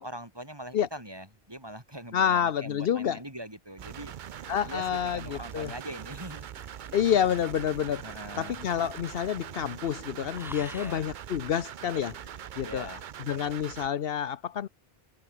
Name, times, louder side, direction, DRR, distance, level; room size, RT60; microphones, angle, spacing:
voice 1, 0.0-4.1 4.6-6.5 8.0-8.6 10.7-11.1 12.6-13.0, right 1 dB, 25° right, 4.4 m, -42 dB
voice 2, 2.1-3.2 4.5-5.7 6.9-8.0 8.4-12.2 12.6-13.0 13.3-14.7, left 9 dB, 70° left, 0.9 m, -28 dB
sound 1, 3.7-9.5 9.7-10.0 10.3-11.2 12.1-12.2, equal, ahead, 3.3 m, -51 dB
sound 2, 3.8-13.9, right 9 dB, 55° right, 0.7 m, -42 dB
omnidirectional pair, 1.0 m